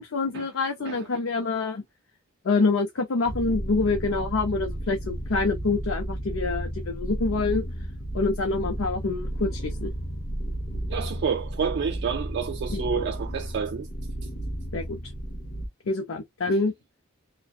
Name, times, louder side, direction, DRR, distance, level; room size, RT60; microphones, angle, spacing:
voice 1, 0.0-1.8 2.4-7.6 8.1-9.9 12.7-13.1 14.7-15.0 15.9-16.7, left 3 dB, 80° left, 0.5 m, -26 dB
sound 1, 3.3-15.7, right 1 dB, 45° left, 0.7 m, -33 dB
voice 2, 10.9-13.9 16.5-16.6, right 6 dB, 55° right, 0.3 m, -29 dB
2.6 x 2.0 x 2.4 m
head